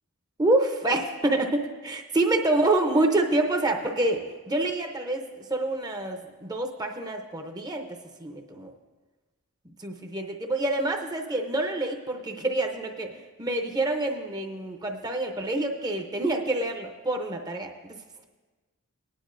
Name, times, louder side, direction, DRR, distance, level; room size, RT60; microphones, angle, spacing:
voice 1, 0.4-7.9 8.2-8.7 9.8-13.1 13.4-18.0, right 2 dB, 20° right, 4 dB, 0.6 m, -27 dB
18.5 x 10.0 x 2.5 m, 1.3 s
head